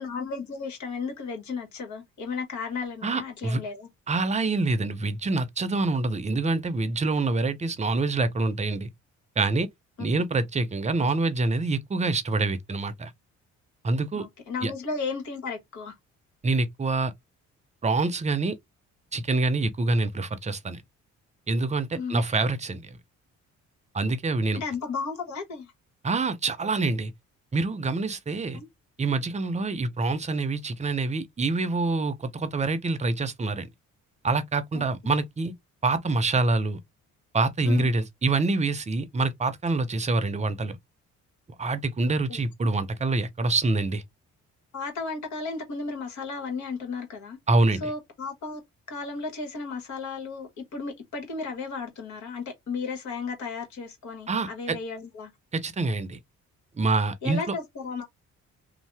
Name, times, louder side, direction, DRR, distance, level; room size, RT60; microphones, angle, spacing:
voice 1, 0.0-3.9 11.0-11.1 14.1-15.9 21.9-22.2 24.5-25.7 28.5-28.7 34.7-34.8 37.6-37.9 42.3-42.4 44.7-47.4 47.8-48.6 48.9-55.3 57.2-58.0, left 4 dB, 70° left, 1.3 m, -34 dB
voice 2, 3.0-3.6 4.1-8.9 9.4-9.7 10.0-13.1 13.8-14.3 14.6-14.7 16.4-17.1 17.8-18.5 19.1-20.8 21.5-23.0 23.9-24.6 26.0-27.1 27.5-28.6 29.0-33.7 34.2-35.5 35.8-36.8 37.3-40.8 41.6-44.0 47.5-47.9 54.3-54.8 55.5-56.2 56.8-57.4, right 3 dB, 25° right, 0.6 m, -26 dB
2.7 x 2.0 x 3.3 m
cardioid pair, 90°, 30 cm